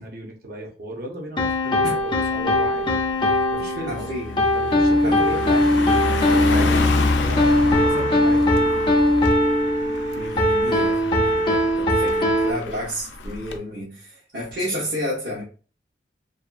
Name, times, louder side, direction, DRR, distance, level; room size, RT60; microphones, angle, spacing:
voice 1, 0.0-3.0 3.5-4.1 4.5-8.4 10.8-11.3, right 1 dB, 55° right, 0.7 m, -36 dB
sound 1, 1.4-12.5, left 1 dB, 30° left, 0.4 m, -20 dB
Car passing by, 2.0-2.2 2.6-13.6, left 3 dB, 90° left, 0.4 m, -28 dB
voice 2, 3.9-4.4 5.0-5.4 10.1-15.4, equal, 75° right, 1.0 m, -31 dB
2.6 x 2.3 x 2.5 m
head